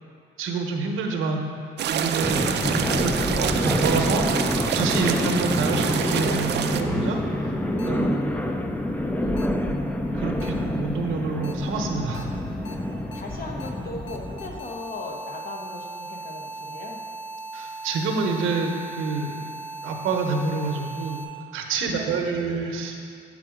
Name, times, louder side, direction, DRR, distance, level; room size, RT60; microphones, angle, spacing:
voice 1, 0.4-1.4 1.9-2.4 2.8-4.2 4.7-7.5 7.8-8.1 10.1-12.3 17.5-19.4 19.8-21.2 21.5-22.9, right 4 dB, 85° right, 3 dB, 0.8 m, -27 dB
sound 1, 1.8-6.8, right 8 dB, 60° right, 0.4 m, -27 dB
sound 2, 2.2-14.6, left 1 dB, 10° left, 0.4 m, -27 dB
sound 3, 4.4-4.5 6.1-6.2 7.8-7.9 9.4-9.5 10.4-10.5 11.4-11.5 12.1-12.2 12.6-12.7 13.1-13.2 13.6-13.7 14.1-21.2, right 2 dB, 70° left, 0.6 m, -38 dB
voice 2, 7.9-9.6 10.2-10.4 12.2-17.0 21.8-22.4, left 2 dB, 45° left, 1 dB, 1.0 m, -40 dB
8.5 x 3.7 x 4.9 m, 2.3 s
cardioid pair, 90°, 20 cm